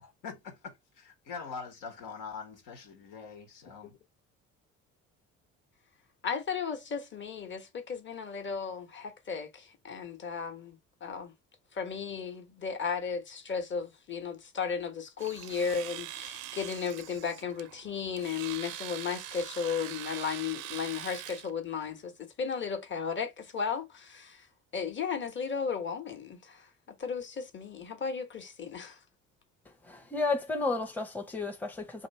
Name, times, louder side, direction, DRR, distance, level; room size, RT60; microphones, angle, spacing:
voice 1, 0.0-4.0, left 5 dB, 75° left, 1.4 m, -43 dB
voice 2, 6.2-11.3 11.7-24.5 24.7-29.0, left 6 dB, 35° left, 1.1 m, -35 dB
Domestic sounds home sounds, 15.2-21.5, right 14 dB, 70° right, 0.5 m, -43 dB
voice 3, 29.8-32.1, left 3 dB, 5° left, 0.8 m, -32 dB
2.9 x 2.7 x 4.2 m
supercardioid pair, 75°, 32 cm